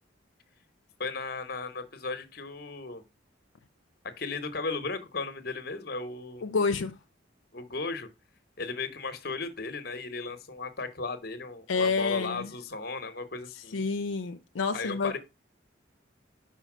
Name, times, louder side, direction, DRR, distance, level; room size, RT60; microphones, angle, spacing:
voice 1, 1.0-3.0 4.0-6.4 7.5-8.1 8.6-13.8 14.7-15.2, left 3 dB, 50° left, 1.0 m, -35 dB
voice 2, 6.4-7.0 11.7-12.5 13.7-15.1, left 4 dB, 85° left, 0.5 m, -28 dB
5.6 x 4.4 x 6.0 m
head